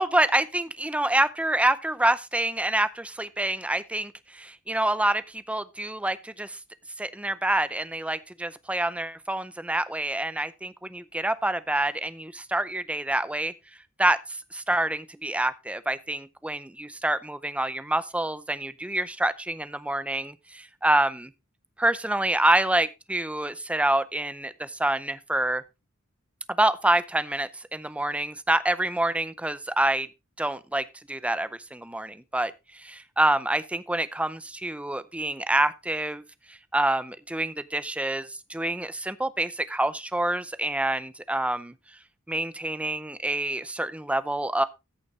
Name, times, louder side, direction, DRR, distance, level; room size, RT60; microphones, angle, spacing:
voice 1, 0.0-6.6 7.0-13.5 14.0-14.2 14.5-21.3 21.8-25.6 26.6-30.1 30.4-36.2 36.7-41.7 42.3-44.6, right 1 dB, 5° right, 0.6 m, -27 dB
14.0 x 6.9 x 3.3 m
head